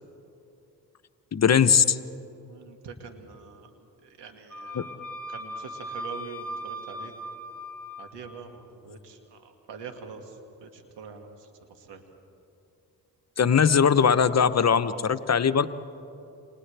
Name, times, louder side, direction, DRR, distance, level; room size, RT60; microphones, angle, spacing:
voice 1, 1.3-2.0 4.7-4.9 13.4-15.7, left 7 dB, 40° left, 12 dB, 0.8 m, -20 dB
voice 2, 2.5-3.7 4.0-5.0 5.3-7.1 8.0-12.0, right 5 dB, 75° right, 5 dB, 2.1 m, -44 dB
Wind instrument woodwind instrument, 4.5-8.1, equal, 5° left, 3.6 m, -38 dB
29.0 x 27.0 x 3.4 m, 2.8 s
supercardioid pair, 45°, 42 cm